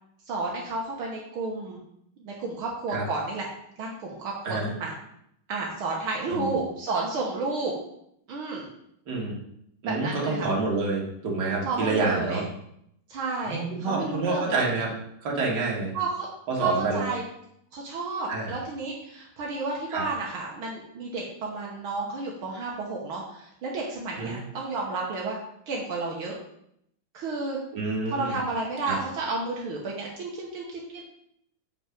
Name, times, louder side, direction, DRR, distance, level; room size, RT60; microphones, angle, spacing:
voice 1, 0.2-1.8 2.2-3.5 3.8-4.9 5.5-7.7 8.3-8.7 9.8-10.5 11.7-12.4 13.1-14.7 15.9-16.3 16.6-17.2 17.7-25.4 25.7-26.4 27.1-27.6 28.1-31.0, right 3 dB, 75° right, -3 dB, 2.0 m, -31 dB
voice 2, 9.8-12.4 13.4-14.9 15.2-15.9 16.5-17.1 18.3-18.5 19.9-20.0 24.2-24.4 27.7-28.4 28.9-29.0, right 3 dB, 55° right, -2 dB, 2.3 m, -28 dB
7.5 x 5.3 x 5.2 m, 0.75 s
omnidirectional pair, 2.3 m